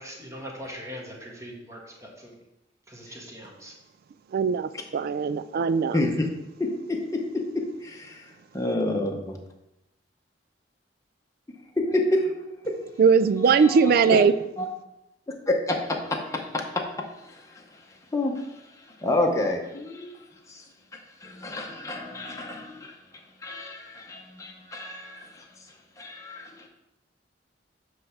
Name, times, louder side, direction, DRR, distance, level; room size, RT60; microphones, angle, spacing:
voice 1, 0.0-2.3 2.9-3.7, equal, 20° right, 1.5 m, -41 dB
voice 2, 4.3-6.0 13.0-14.3, right 5 dB, 55° right, 0.3 m, -20 dB
voice 3, 5.9-6.3 6.6-7.2 7.8-9.4 11.8-12.3 13.5-14.2 14.6-14.7 15.3-16.8 17.1-20.6 20.9-23.0 23.4-25.5 26.0-26.7, left 1 dB, 20° left, 0.8 m, -29 dB
7.8 x 3.3 x 5.7 m
head